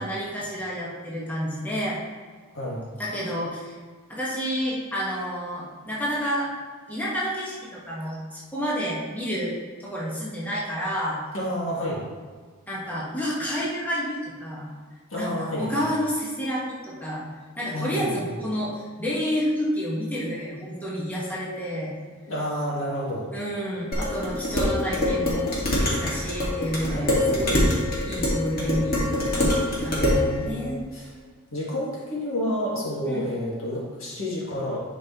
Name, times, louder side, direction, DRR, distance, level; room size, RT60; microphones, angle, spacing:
voice 1, 0.0-2.0 3.0-3.8 4.1-6.5 6.9-11.2 12.7-14.7 15.2-17.2 17.6-21.9 23.3-27.7 28.0-30.9 33.0-33.2, equal, 10° left, -7 dB, 1.3 m, -29 dB
voice 2, 2.5-2.9 11.3-12.0 15.1-15.9 17.7-18.3 22.3-23.3 26.9-27.6 29.9-31.1 31.5-34.8, equal, 65° left, -5 dB, 2.1 m, -30 dB
Dishes pots and pans, 23.9-30.3, left 1 dB, 45° left, 1.9 m, -24 dB
10.5 x 5.3 x 2.9 m, 1.5 s
head